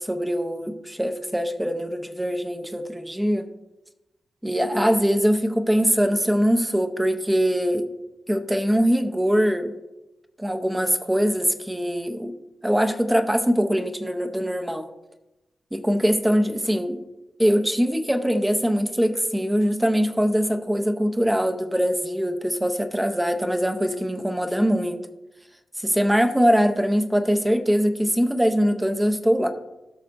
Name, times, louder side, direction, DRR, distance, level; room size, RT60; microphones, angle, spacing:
voice 1, 0.0-3.5 4.4-7.9 8.3-9.7 10.4-12.3 12.6-14.9 15.7-17.0 17.4-25.0 25.8-29.5, equal, 5° right, 7 dB, 0.7 m, -22 dB
16.5 x 6.4 x 2.6 m, 0.99 s
wide cardioid pair, 130°, 0 cm